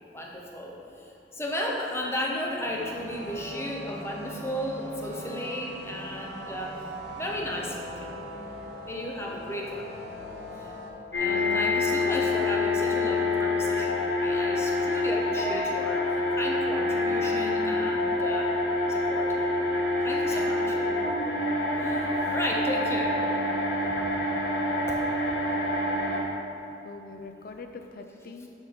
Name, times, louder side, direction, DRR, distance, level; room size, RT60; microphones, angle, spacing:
voice 1, 0.1-0.8 1.3-6.8 7.1-8.1 8.8-9.9 11.1-16.1 16.4-18.5 18.9-19.4 20.0-20.6 21.8-23.2 23.8-24.1 24.9-25.0, left 1 dB, 15° left, -1 dB, 0.8 m, -34 dB
sound 1, 2.6-10.9, equal, 70° right, 1.1 m, -41 dB
sound 2, 11.1-26.2, left 2 dB, 75° left, 1.4 m, -26 dB
voice 2, 11.3-11.7 20.3-21.1 26.8-28.5, left 4 dB, 55° left, 6 dB, 0.5 m, -42 dB
6.6 x 6.1 x 4.2 m, 2.9 s
head